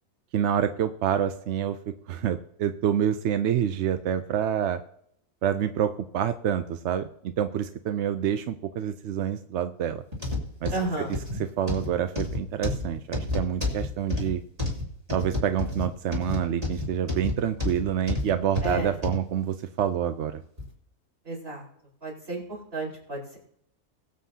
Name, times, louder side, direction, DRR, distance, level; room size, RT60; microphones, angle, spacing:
voice 1, 0.3-1.8 2.1-4.8 5.4-10.0 10.6-14.4 15.1-20.4, right 9 dB, 65° right, 10 dB, 0.7 m, -27 dB
sound 1, 10.1-19.2 19.8-19.9 20.6-20.7, left 2 dB, 25° right, 2.7 m, -30 dB
voice 2, 10.7-11.1 18.6-18.9 21.3-21.6 22.0-22.4 22.7-23.4, right 2 dB, 40° right, -3 dB, 4.6 m, -31 dB
21.5 x 7.8 x 2.8 m, 0.71 s
omnidirectional pair, 1.6 m